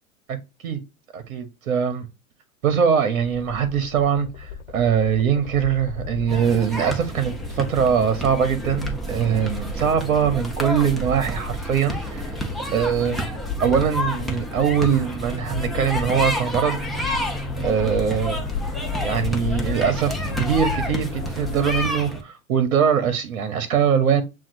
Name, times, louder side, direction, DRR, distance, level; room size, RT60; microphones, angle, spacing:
voice 1, 1.1-2.1 2.6-12.3 12.7-13.3 13.6-16.8 17.6-18.5 19.0-24.2, right 7 dB, 65° right, 0.9 m, -22 dB
sound 1, 3.3-21.9, left 7 dB, 55° left, 0.5 m, -34 dB
sound 2, 6.3-22.2, right 1 dB, ahead, 0.6 m, -30 dB
7.2 x 2.5 x 2.5 m
hypercardioid pair, 100°, 42 cm